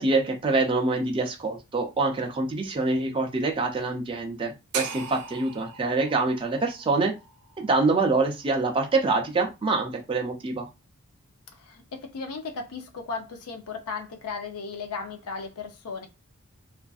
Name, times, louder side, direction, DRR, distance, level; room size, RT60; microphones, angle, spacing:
voice 1, 0.0-7.1 7.6-10.7, right 3 dB, 25° right, 0.4 m, -25 dB
sound 1, 4.7-8.9, right 5 dB, 85° right, 0.5 m, -39 dB
voice 2, 11.5-16.1, left 4 dB, 80° left, 0.6 m, -36 dB
2.5 x 2.4 x 2.3 m
head